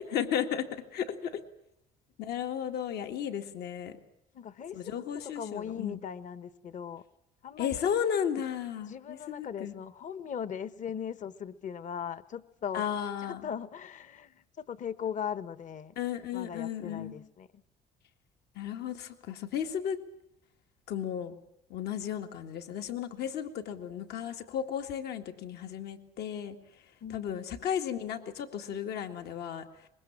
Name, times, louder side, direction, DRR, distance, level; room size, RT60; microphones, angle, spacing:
voice 1, 0.0-1.4 2.2-4.0 4.7-6.0 7.6-9.8 12.7-13.5 16.0-17.2 18.6-20.0 20.9-21.3 21.7-26.6 27.1-29.9, left 9 dB, 75° left, 5 dB, 2.1 m, -34 dB
voice 2, 4.3-7.0 7.4-7.9 8.7-12.9 13.2-15.9 16.3-17.5 27.0-27.5, left 8 dB, 50° left, 15 dB, 1.2 m, -39 dB
24.0 x 21.5 x 7.4 m, 0.80 s
cardioid pair, 110°, 17 cm